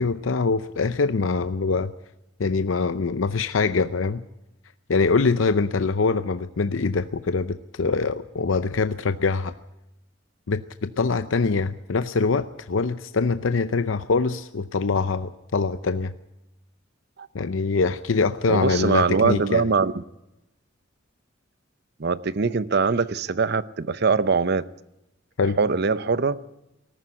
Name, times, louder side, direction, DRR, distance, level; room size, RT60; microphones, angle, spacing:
voice 1, 0.0-1.9 2.4-4.2 4.9-9.5 10.5-16.1 17.3-19.7 25.4-25.6, left 4 dB, 75° left, 11 dB, 0.6 m, -24 dB
voice 2, 18.5-20.0 22.0-24.6 25.6-26.4, right 4 dB, 55° right, 16 dB, 0.7 m, -22 dB
18.5 x 14.0 x 10.0 m, 0.90 s
head